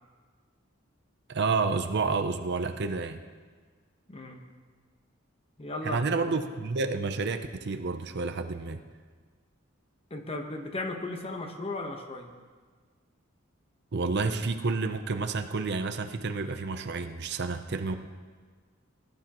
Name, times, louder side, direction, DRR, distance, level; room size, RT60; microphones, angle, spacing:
voice 1, 1.3-3.2 5.8-8.8 13.9-18.0, right 4 dB, 55° right, 8 dB, 0.6 m, -30 dB
voice 2, 4.1-4.4 5.6-6.3 10.1-12.3, left 2 dB, 30° left, 4 dB, 1.1 m, -36 dB
19.5 x 12.0 x 3.0 m, 1.5 s
head